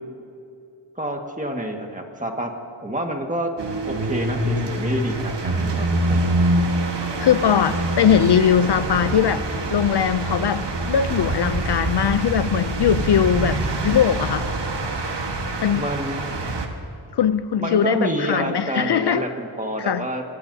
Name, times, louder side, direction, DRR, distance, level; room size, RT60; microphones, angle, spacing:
voice 1, 1.0-2.5 2.8-3.5 3.9-6.3 15.7-16.3 17.6-20.2, right 1 dB, 15° right, 2 dB, 1.8 m, -28 dB
sound 1, 3.6-16.7, right 2 dB, 60° right, 1.6 m, -25 dB
voice 2, 7.2-14.5 15.6-15.9 17.1-19.2 19.9-20.1, left 8 dB, 60° left, 13 dB, 0.5 m, -20 dB
24.0 x 19.0 x 2.8 m, 2.6 s
wide cardioid pair, 85°, 47 cm